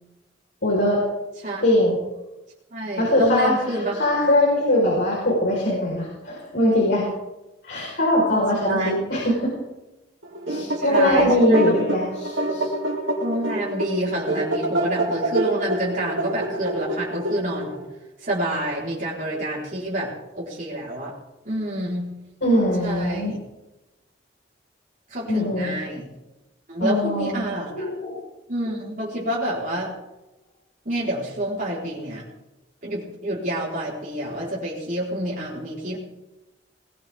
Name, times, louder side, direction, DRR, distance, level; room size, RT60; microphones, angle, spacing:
voice 1, 0.6-1.0 1.6-2.0 3.0-7.1 7.6-9.5 10.5-12.7 22.4-23.3 25.3-25.8 26.8-27.4 27.7-28.2, left 1 dB, 70° left, -5 dB, 5.1 m, -21 dB
voice 2, 2.7-3.9 8.6-8.9 10.8-11.8 13.2-17.8 18.2-21.1 21.4-22.1 22.8-23.4 25.1-26.1 26.7-27.9 28.5-29.9 30.8-32.2 32.8-36.0, right 1 dB, 45° right, -6 dB, 4.7 m, -28 dB
sound 1, 10.2-17.8, right 1 dB, 80° right, 3.6 m, -26 dB
20.5 x 16.5 x 3.8 m, 0.99 s
head